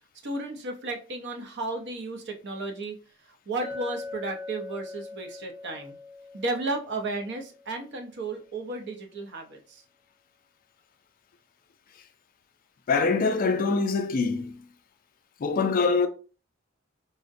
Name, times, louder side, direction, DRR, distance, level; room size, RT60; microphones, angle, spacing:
voice 1, 0.2-3.0 3.5-6.0 6.3-9.8, right 2 dB, 55° right, 0.6 m, -33 dB
Chink clink, 3.6-8.1, left 3 dB, 15° right, 0.8 m, -41 dB
voice 2, 12.9-14.6 15.4-16.1, left 4 dB, 45° left, 0.3 m, -24 dB
3.5 x 2.1 x 2.5 m
head